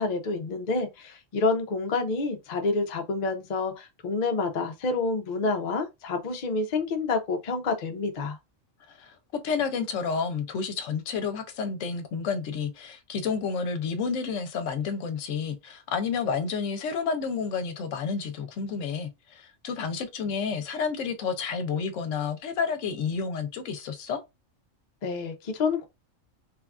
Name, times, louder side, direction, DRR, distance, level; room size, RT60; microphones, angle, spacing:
voice 1, 0.0-8.4 25.0-25.9, left 3 dB, 60° left, 0.4 m, -28 dB
voice 2, 9.4-24.2, left 5 dB, 75° left, 0.9 m, -30 dB
3.2 x 2.3 x 2.3 m
omnidirectional pair, 1.4 m